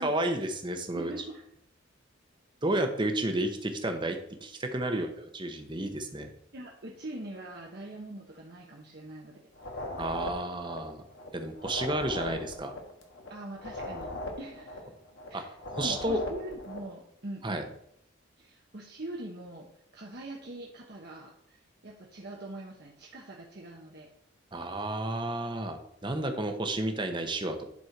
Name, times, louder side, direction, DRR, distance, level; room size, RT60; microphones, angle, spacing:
voice 1, 0.0-1.1 2.6-5.1 5.4-6.3 10.0-11.0 11.3-12.7 15.3-15.4 15.7-16.2 17.4-17.6 24.5-27.7, right 1 dB, 25° right, 6 dB, 0.9 m, -31 dB
voice 2, 0.9-1.4 4.9-5.0 6.5-9.4 9.7-9.9 13.3-14.1 14.4-14.9 15.3-17.7 18.4-19.7 19.9-24.1, right 1 dB, 50° right, -1 dB, 1.0 m, -43 dB
sound 1, 9.5-11.3 11.5-15.3 15.5-16.9, left 1 dB, 65° left, 1.5 m, -39 dB
11.0 x 4.4 x 4.6 m, 0.71 s
head